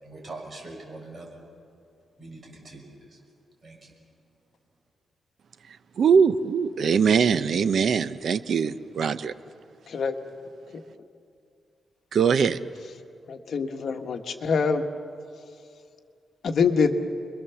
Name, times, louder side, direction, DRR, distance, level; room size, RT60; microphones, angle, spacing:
voice 1, 0.0-1.4 2.2-3.2 3.6-3.9, right 2 dB, 30° right, -1 dB, 6.4 m, -43 dB
voice 2, 6.0-9.3 12.1-12.6, right 6 dB, 55° right, 12 dB, 0.8 m, -22 dB
voice 3, 13.3-14.8 16.4-16.9, left 5 dB, 55° left, 5 dB, 1.6 m, -25 dB
28.5 x 22.5 x 7.1 m, 2.4 s
wide cardioid pair, 175°, 0 cm